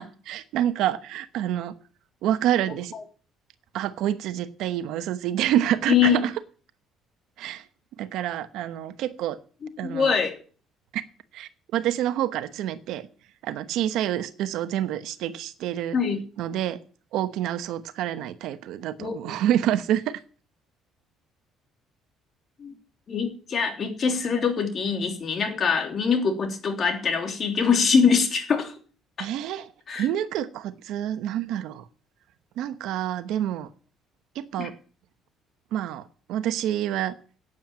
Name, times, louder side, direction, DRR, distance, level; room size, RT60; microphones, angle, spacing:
voice 1, 0.0-1.7 2.2-2.9 3.7-6.1 7.4-7.6 8.0-9.4 9.8-10.1 10.9-11.0 11.3-13.0 13.4-16.0 16.4-16.8 17.1-20.2 29.2-29.7 30.0-31.8 32.6-33.7 34.4-34.7 35.7-36.0 36.3-37.1, right 11 dB, 75° right, 11 dB, 1.0 m, -27 dB
voice 2, 5.9-6.3 9.8-10.4 15.9-16.2 19.0-19.3 22.6-22.7 23.1-28.7 29.9-30.1 34.6-34.7, left 6 dB, 45° left, 4 dB, 3.2 m, -23 dB
9.1 x 8.9 x 8.8 m, 0.41 s
cardioid pair, 95°, 0 cm